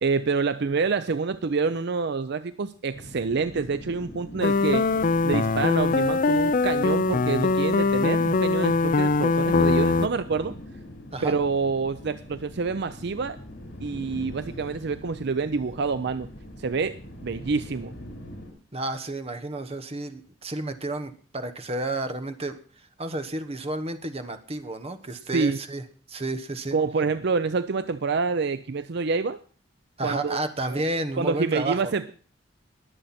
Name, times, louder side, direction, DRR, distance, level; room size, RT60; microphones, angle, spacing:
voice 1, 0.0-4.9 5.2-10.5 11.2-13.4 13.8-16.3 16.6-17.9 25.3-25.6 26.7-29.4 30.0-30.8 31.2-32.1, right 4 dB, 60° right, 13 dB, 0.5 m, -27 dB
sound 1, 2.9-18.5, equal, 65° left, 5.8 m, -43 dB
sound 2, 4.4-10.1, left 3 dB, 45° left, 0.5 m, -22 dB
voice 2, 18.7-22.6 23.0-25.8 26.1-26.7 30.0-31.9, right 2 dB, 30° right, 9 dB, 1.2 m, -31 dB
21.0 x 7.8 x 4.3 m, 0.41 s
head